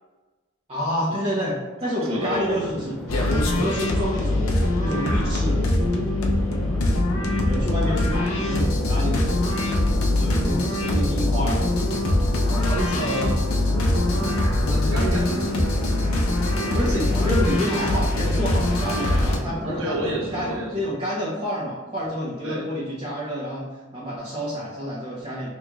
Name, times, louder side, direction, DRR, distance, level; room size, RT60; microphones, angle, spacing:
voice 1, 0.7-3.0 3.5-5.6 7.4-9.7 10.1-11.6 12.4-13.2 16.7-25.5, equal, 30° right, -9 dB, 0.8 m, -29 dB
voice 2, 2.0-2.6 3.9-4.2 12.7-13.6 13.9-14.2 14.6-16.0 19.6-20.9 22.4-22.7, equal, 70° right, -3 dB, 1.0 m, -31 dB
Chatter / Fixed-wing aircraft airplane, 2.1-21.0, equal, ahead, 0.3 m, -35 dB
sound 1, 3.1-19.4, left 1 dB, 75° left, 0.6 m, -22 dB
4.9 x 3.1 x 2.4 m, 1.2 s
head